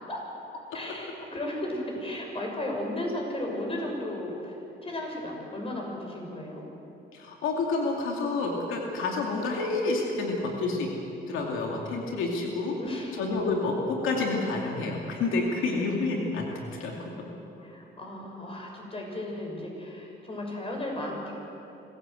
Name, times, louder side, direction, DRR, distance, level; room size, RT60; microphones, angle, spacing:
voice 1, 0.7-4.6 4.8-6.7 12.8-13.1 17.6-21.4, left 1 dB, 30° left, 0 dB, 6.5 m, -35 dB
voice 2, 7.1-10.9 11.3-12.8 13.2-16.9, left 3 dB, 90° left, 0 dB, 2.7 m, -29 dB
25.5 x 16.0 x 7.9 m, 2.9 s
cardioid pair, 90°, 20 cm